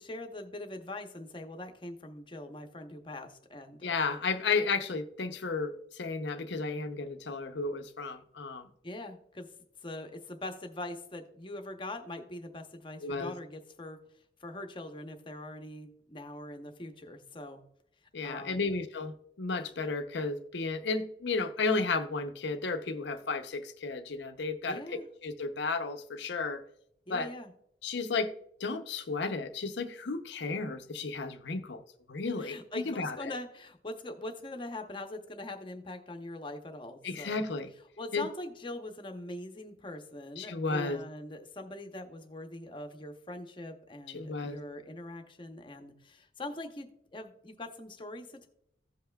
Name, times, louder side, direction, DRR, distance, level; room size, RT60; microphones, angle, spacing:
voice 1, 0.0-4.0 8.8-9.5 9.8-14.0 14.4-17.6 18.2-18.7 24.6-25.1 27.1-27.5 32.4-37.5 38.0-48.5, left 1 dB, 25° left, 0.8 m, -42 dB
voice 2, 3.8-5.7 6.0-8.6 13.0-13.3 18.1-19.1 19.4-24.8 25.2-26.6 27.1-27.3 27.8-28.3 28.6-31.8 32.1-33.2 37.0-37.7 38.1-38.3 40.4-41.0 44.1-44.6, left 4 dB, 65° left, 0.6 m, -33 dB
16.0 x 5.6 x 2.2 m
head